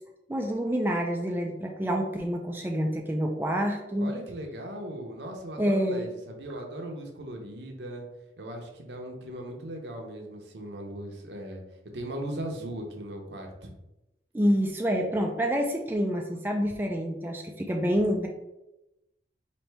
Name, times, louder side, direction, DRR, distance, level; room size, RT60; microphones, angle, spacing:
voice 1, 0.3-4.1 5.6-6.1 14.3-18.3, equal, 10° right, 1 dB, 0.3 m, -27 dB
voice 2, 4.0-8.1 8.4-11.6 11.9-13.7, right 1 dB, 80° right, 2 dB, 0.8 m, -38 dB
4.2 x 2.7 x 3.3 m, 0.94 s
head